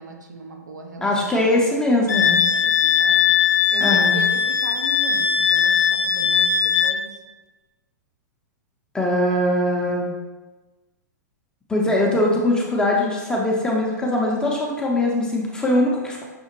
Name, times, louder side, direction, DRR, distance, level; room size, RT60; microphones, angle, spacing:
voice 1, 0.0-1.6 2.5-7.2, right 4 dB, 85° right, 3 dB, 0.5 m, -38 dB
voice 2, 1.0-2.4 3.8-4.3 8.9-10.1 11.7-16.2, left 1 dB, 10° left, -3 dB, 0.5 m, -21 dB
Wind instrument woodwind instrument, 2.1-7.0, left 7 dB, 75° left, 0.4 m, -19 dB
5.7 x 2.1 x 2.9 m, 1.2 s
figure-of-eight pair, 105°, 10 cm